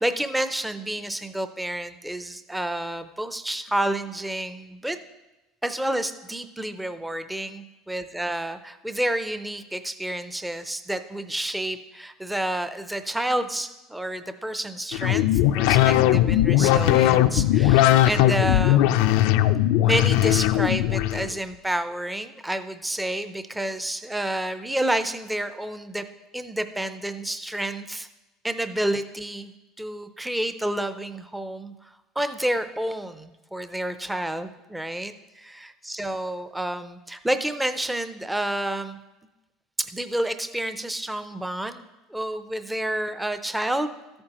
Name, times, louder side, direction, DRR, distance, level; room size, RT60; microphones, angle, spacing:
voice 1, 0.0-5.0 5.6-18.9 19.8-26.1 26.3-28.1 28.4-31.9 32.2-39.0 39.8-43.9, right 1 dB, 5° right, 10 dB, 0.5 m, -29 dB
sound 1, 14.9-21.3, left 13 dB, 75° left, 0.4 m, -19 dB
13.5 x 8.7 x 2.9 m, 1.0 s
supercardioid pair, 125°, 0 cm